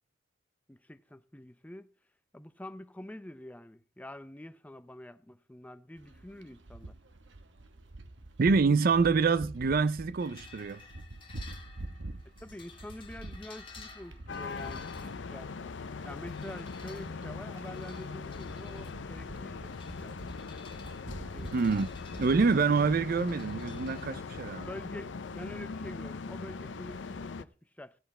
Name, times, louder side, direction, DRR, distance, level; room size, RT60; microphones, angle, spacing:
voice 1, 0.7-1.9 2.3-7.0 12.4-15.5 16.0-19.7 20.0-20.2 21.3-21.5 24.7-28.0, left 1 dB, 10° left, 0.5 m, -46 dB
sound 1, 6.0-22.9, right 2 dB, 80° right, 1.1 m, -47 dB
voice 2, 8.4-10.8 21.5-21.9 22.2-24.7, right 4 dB, 50° right, 0.5 m, -26 dB
sound 2, 10.2-24.0, left 5 dB, 30° left, 1.9 m, -55 dB
sound 3, 14.3-27.4, left 4 dB, 80° left, 0.6 m, -41 dB
16.0 x 7.9 x 4.2 m
head